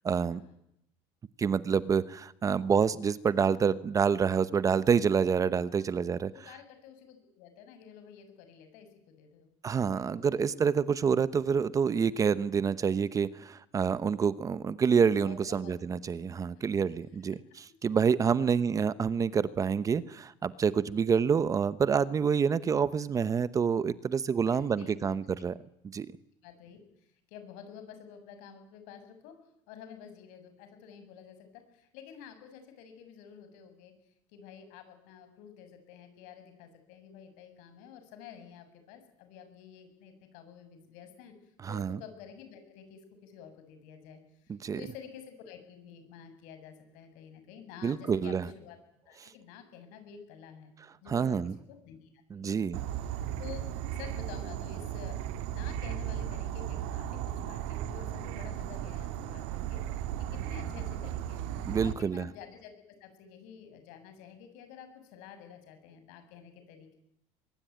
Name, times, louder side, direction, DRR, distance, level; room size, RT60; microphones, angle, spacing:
voice 1, 0.0-0.4 1.4-6.3 9.6-25.5 25.9-26.1 41.6-42.0 44.5-44.8 47.8-48.5 49.2-49.3 51.1-51.5 52.3-52.9 61.6-62.3, right 6 dB, 25° right, 16 dB, 0.9 m, -27 dB
voice 2, 5.7-10.3 15.2-15.7 17.3-17.4 18.4-18.6 24.5-25.2 26.4-29.3 29.7-33.9 34.3-41.3 41.7-48.8 49.1-50.7 51.0-52.1 52.4-52.7 53.0-55.2 55.5-62.7 63.0-67.0, left 8 dB, 75° left, 8 dB, 7.0 m, -50 dB
Insect / Frog, 52.7-61.9, right 11 dB, 90° right, 2.6 m, -36 dB
23.5 x 22.0 x 9.4 m, 0.79 s
cardioid pair, 140°, 13 cm